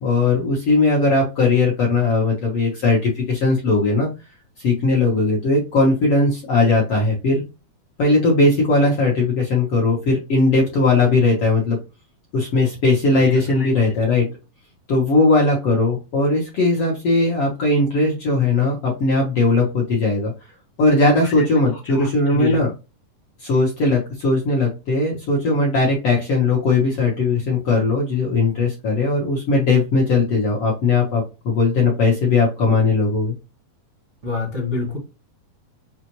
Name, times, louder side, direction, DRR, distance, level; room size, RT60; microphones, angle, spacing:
voice 1, 0.0-4.1 4.6-7.4 8.0-11.8 12.3-14.3 14.9-20.3 20.8-22.7 23.4-33.3, left 3 dB, 65° left, -3 dB, 1.4 m, -18 dB
voice 2, 13.1-13.7 21.2-21.4 21.8-22.6 34.2-35.0, left 3 dB, 80° right, -6 dB, 0.6 m, -28 dB
6.2 x 2.5 x 3.0 m, 0.29 s
omnidirectional pair, 4.2 m